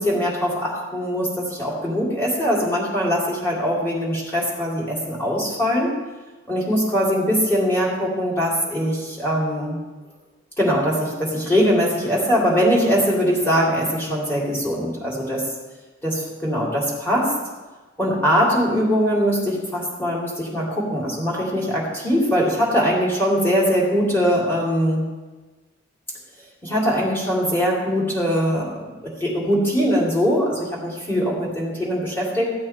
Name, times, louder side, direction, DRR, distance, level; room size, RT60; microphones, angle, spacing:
voice 1, 0.0-5.9 6.5-9.8 10.6-15.5 16.0-17.3 18.0-25.1 26.6-32.5, equal, 10° left, -5 dB, 3.0 m, -22 dB
14.5 x 8.4 x 4.4 m, 1.2 s
head